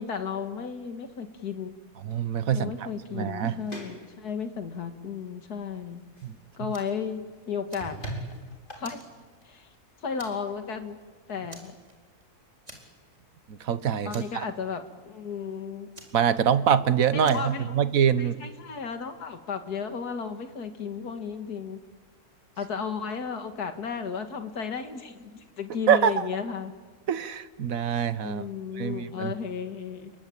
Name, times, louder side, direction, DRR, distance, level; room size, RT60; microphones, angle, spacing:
voice 1, 0.0-1.8 2.5-6.0 6.6-8.0 8.7-9.0 9.4-9.7 10.0-11.0 11.3-11.7 14.0-15.9 17.1-17.9 18.2-21.8 22.6-26.7 28.2-30.1, left 6 dB, 75° left, 7 dB, 2.4 m, -34 dB
voice 2, 2.0-2.9 3.1-3.6 6.2-6.4 13.5-14.4 16.1-18.4 25.9-26.1 27.1-28.4 28.8-29.3, right 8 dB, 60° right, 14 dB, 1.4 m, -24 dB
sound 1, 2.8-10.8, right 1 dB, 30° left, 5.1 m, -45 dB
Fire, 6.7-7.0 7.4-8.4 8.8-9.8 10.2-10.6 10.9-11.0 11.5-12.2 12.7-13.2 13.5-13.6 14.1-14.9 15.9-16.8 17.2-17.6, right 1 dB, 25° right, 4.6 m, -49 dB
29.5 x 23.0 x 8.9 m, 1.4 s
omnidirectional pair, 1.7 m